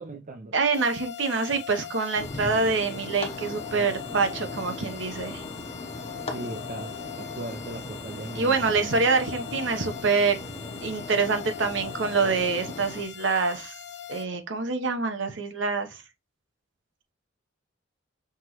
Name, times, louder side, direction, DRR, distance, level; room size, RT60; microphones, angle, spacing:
voice 1, 0.0-0.5 6.3-8.9, right 2 dB, 40° right, 0.5 m, -38 dB
voice 2, 0.5-5.4 8.3-10.4 10.8-13.7 14.1-16.0, right 4 dB, 60° right, 0.9 m, -26 dB
sound 1, 0.7-14.2, left 10 dB, 60° left, 0.6 m, -41 dB
sound 2, 2.2-13.0, left 2 dB, 30° left, 0.8 m, -38 dB
5.9 x 3.0 x 2.9 m
head